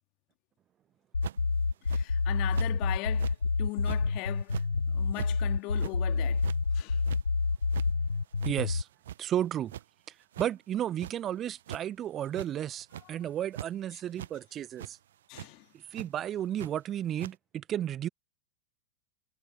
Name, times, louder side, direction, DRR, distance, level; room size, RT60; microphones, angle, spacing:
sound 1, 1.1-8.8, left 4 dB, 80° left, 0.3 m, -28 dB
sound 2, 1.2-1.5 1.9-2.0 2.5-2.7 3.1-3.4 3.8-4.0 4.4-4.7 5.1-5.3 5.7-6.0 6.4-6.6 7.0-7.2 7.6-7.9 8.4-8.5 8.9-9.4 9.7-9.8 10.3-10.5 11.0-11.1 11.6-11.8 12.3-12.5 12.8-13.1 13.5-13.7 14.2-14.3 14.8-14.9 15.3-15.5 15.9-16.1 16.6-16.7 17.2-17.3, right 11 dB, 60° right, 1.0 m, -40 dB
voice 1, 1.8-7.0 13.0-13.2 13.9-14.0 15.3-15.7, left 26 dB, 40° left, 2.0 m, -40 dB
voice 2, 8.4-8.9 9.2-9.7 10.4-15.0 15.9-18.1, right 11 dB, 25° right, 1.2 m, -33 dB
figure-of-eight pair, 95°, 0 cm